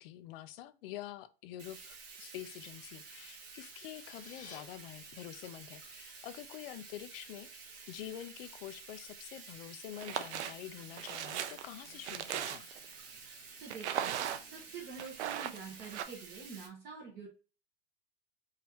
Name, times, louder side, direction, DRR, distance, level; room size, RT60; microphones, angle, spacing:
voice 1, 0.0-7.5 7.9-12.7, left 12 dB, 55° left, 0.6 m, -47 dB
Bathtub (filling or washing), 1.6-16.7, right 4 dB, 50° right, 2.0 m, -51 dB
sound 1, 3.8-4.6, left 5 dB, 25° left, 1.1 m, -53 dB
sound 2, 9.9-10.5 11.0-12.8 13.7-14.6 15.0-16.0, right 10 dB, 70° right, 0.7 m, -37 dB
voice 2, 13.6-17.3, right 5 dB, 30° right, 1.3 m, -47 dB
4.9 x 2.8 x 3.1 m
supercardioid pair, 140°, 35 cm